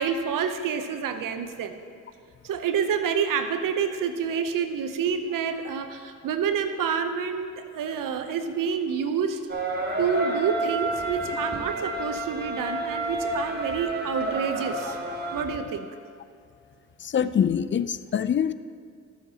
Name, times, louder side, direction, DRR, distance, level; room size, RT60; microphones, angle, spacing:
voice 1, 0.0-1.8 2.4-9.4 10.0-15.0 15.3-15.9, right 7 dB, 80° right, 9 dB, 0.7 m, -28 dB
sound 1, 9.5-15.4, right 2 dB, 30° right, 1.5 m, -30 dB
voice 2, 17.0-18.5, left 8 dB, 35° left, 14 dB, 0.4 m, -24 dB
14.5 x 7.2 x 2.8 m, 2.2 s
cardioid pair, 55°, 32 cm